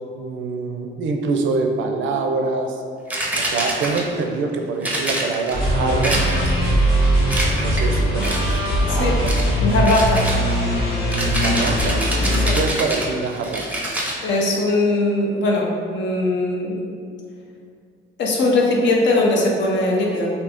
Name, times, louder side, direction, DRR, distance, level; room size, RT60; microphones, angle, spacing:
voice 1, 0.2-2.8 3.3-6.2 7.6-9.3 11.2-13.6, right 3 dB, 75° right, 4 dB, 0.4 m, -25 dB
sound 1, 3.1-4.2 4.8-5.6 6.0-6.7 7.3-7.9 8.2-8.7 9.3-9.5 9.8-14.2, right 1 dB, 5° right, 0.5 m, -26 dB
sound 2, 5.5-12.5, equal, 85° left, 1.3 m, -20 dB
voice 2, 9.6-10.2 12.4-12.6 14.2-16.8 18.2-20.3, left 2 dB, 65° left, -1 dB, 0.6 m, -20 dB
2.7 x 2.5 x 3.4 m, 2.3 s
cardioid pair, 90°, 20 cm